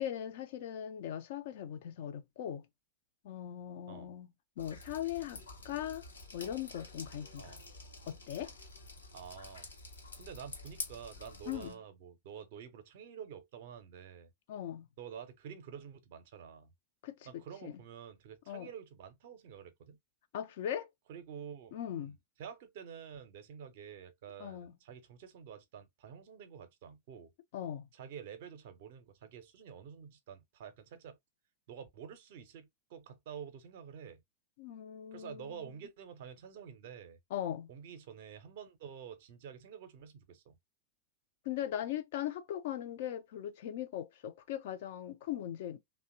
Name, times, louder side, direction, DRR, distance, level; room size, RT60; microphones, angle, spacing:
voice 1, 0.0-2.6 3.2-4.3 4.6-6.1 6.3-7.6 8.1-8.5 11.5-11.8 14.5-14.9 17.0-17.7 18.5-18.7 20.3-20.9 21.7-22.2 24.4-24.7 27.5-27.9 34.6-35.6 37.3-37.7 41.5-45.8, left 11 dB, 55° left, 0.4 m, -39 dB
Drip, 4.6-11.7, left 3 dB, 75° left, 0.8 m, -48 dB
voice 2, 9.1-9.7 10.1-14.3 15.0-16.7 17.2-20.0 21.1-27.3 27.9-31.2 31.7-34.2 35.1-37.2 37.7-40.6, right 8 dB, 55° right, 0.6 m, -49 dB
2.7 x 2.1 x 2.5 m
figure-of-eight pair, 90°, 0 cm